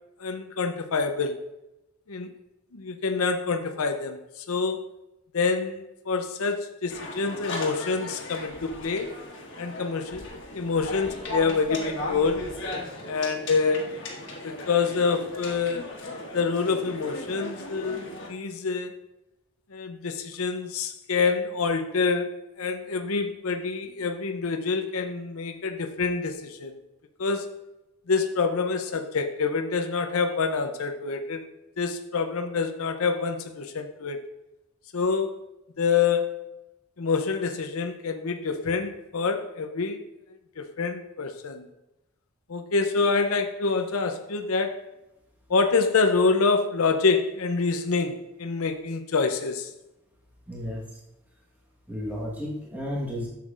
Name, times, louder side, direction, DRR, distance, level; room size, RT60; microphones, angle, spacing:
voice 1, 0.2-1.4 2.1-2.3 2.7-4.8 5.3-9.1 9.6-10.3 10.5-12.5 13.0-13.9 14.4-15.9 16.3-18.9 19.7-22.3 22.6-26.7 27.2-27.5 28.1-31.4 31.8-34.2 34.9-35.4 35.8-36.4 37.0-40.0 40.6-41.7 42.5-44.8 45.5-49.7, left 4 dB, 70° left, 6 dB, 0.6 m, -26 dB
sound 1, 6.9-18.3, left 1 dB, 50° left, 1.5 m, -37 dB
voice 2, 50.5-50.8 51.9-53.3, left 1 dB, 5° right, -5 dB, 1.3 m, -32 dB
11.0 x 7.2 x 2.5 m, 0.93 s
head